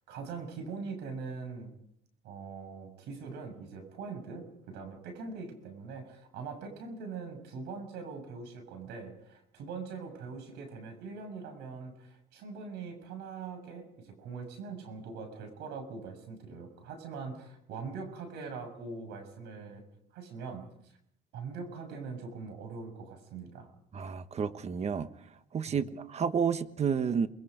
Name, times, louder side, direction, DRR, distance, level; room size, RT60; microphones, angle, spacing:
voice 1, 0.1-1.7 2.2-19.8 20.1-20.9 21.3-23.7 25.7-25.8, right 4 dB, 85° right, 6 dB, 6.8 m, -42 dB
voice 2, 23.9-25.1 25.5-27.3, right 6 dB, 40° right, 11 dB, 1.3 m, -30 dB
28.5 x 21.5 x 5.2 m, 0.75 s
cardioid pair, 110°, 17 cm